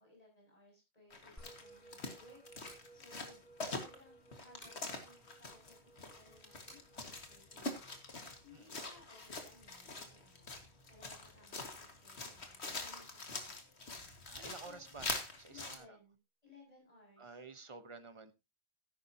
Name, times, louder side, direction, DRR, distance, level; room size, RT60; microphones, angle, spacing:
voice 1, 0.0-3.4 3.7-5.7 6.1-8.0 8.4-10.6 10.9-13.6 14.3-14.9 15.5-16.2 16.4-17.4, left 2 dB, 35° left, 6.7 m, -62 dB
sound 1, 1.1-15.8, left 3 dB, 85° left, 2.2 m, -45 dB
Musical instrument, 1.4-12.0, right 2 dB, ahead, 6.3 m, -62 dB
sound 2, 2.6-2.9 4.6-4.9 6.7-6.9, equal, 55° left, 5.6 m, -56 dB
voice 2, 14.3-15.1 15.4-15.9 17.2-18.3, right 4 dB, 30° right, 1.1 m, -51 dB
14.0 x 11.0 x 2.8 m
omnidirectional pair, 1.1 m